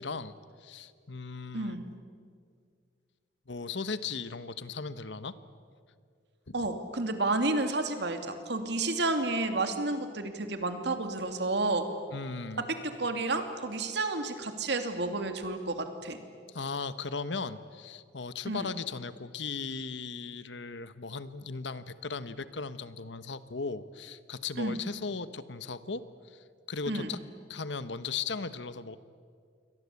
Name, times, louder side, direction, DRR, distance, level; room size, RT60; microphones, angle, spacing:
voice 1, 0.0-1.8 3.5-5.4 6.5-6.6 12.1-12.7 16.5-27.2 27.5-29.0, left 4 dB, 75° left, 13 dB, 1.2 m, -37 dB
voice 2, 1.5-1.8 6.5-11.9 12.6-16.2 18.5-18.7 24.6-24.8 26.9-27.1, right 2 dB, 70° right, 7 dB, 2.7 m, -31 dB
29.0 x 23.5 x 8.5 m, 2.1 s
head